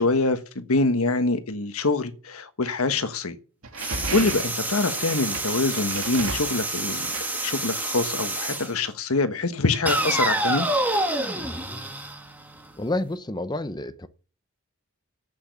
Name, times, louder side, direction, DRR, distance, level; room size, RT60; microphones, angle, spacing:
voice 1, 0.0-3.3 4.1-7.1 7.4-10.7, left 3 dB, 85° left, 1.4 m, -25 dB
sound 1, 3.6-8.0, right 3 dB, 85° right, 2.8 m, -36 dB
sound 2, 3.8-8.7 9.9-12.8, right 2 dB, 10° right, 1.4 m, -28 dB
voice 2, 12.8-14.1, left 1 dB, 20° left, 0.7 m, -29 dB
10.5 x 8.6 x 8.3 m
head